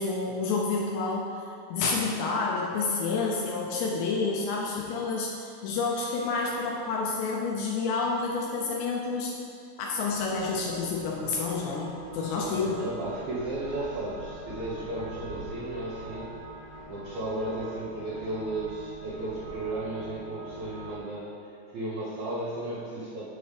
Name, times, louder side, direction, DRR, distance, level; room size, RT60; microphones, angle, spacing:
voice 1, 0.0-9.3 9.8-12.8, left 4 dB, 80° left, -2 dB, 2.6 m, -29 dB
sound 1, 10.1-20.9, right 1 dB, 60° left, 1.6 m, -44 dB
voice 2, 12.3-16.3 16.9-23.2, right 2 dB, 70° right, -9 dB, 2.3 m, -34 dB
7.7 x 6.9 x 3.3 m, 2.4 s
omnidirectional pair, 5.4 m